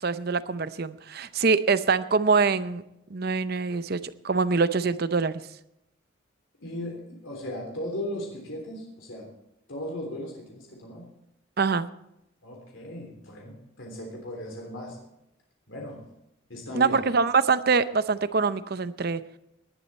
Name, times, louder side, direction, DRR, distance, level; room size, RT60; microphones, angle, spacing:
voice 1, 0.0-2.8 3.1-5.4 11.6-11.9 16.7-19.2, right 4 dB, 50° right, 14 dB, 0.6 m, -24 dB
voice 2, 6.6-9.3 9.7-11.0 12.4-15.0 15.7-16.0 16.5-17.1, left 1 dB, 70° left, 0 dB, 3.4 m, -37 dB
19.0 x 11.0 x 4.3 m, 0.84 s
head